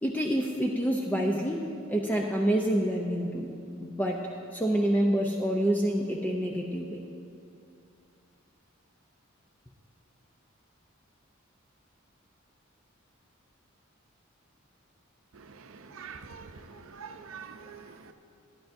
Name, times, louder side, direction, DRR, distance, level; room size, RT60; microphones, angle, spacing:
voice 1, 0.0-3.5 3.8-4.2 4.5-7.0, right 1 dB, 10° left, 0 dB, 0.5 m, -27 dB
voice 2, 15.9-18.1, right 6 dB, 80° right, 8 dB, 0.6 m, -45 dB
14.5 x 10.5 x 2.6 m, 2.6 s
head